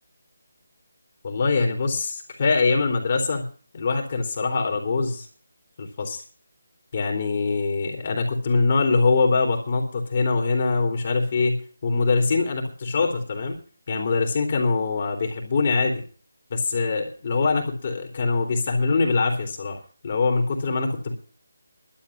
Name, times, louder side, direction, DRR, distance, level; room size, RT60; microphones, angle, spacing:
voice 1, 1.2-3.5 3.7-5.3 5.8-6.2 6.9-13.6 13.9-16.0 16.5-21.1, left 4 dB, 40° left, 2 dB, 3.4 m, -23 dB
12.0 x 7.4 x 9.8 m, 0.40 s
figure-of-eight pair, 160°, 0 cm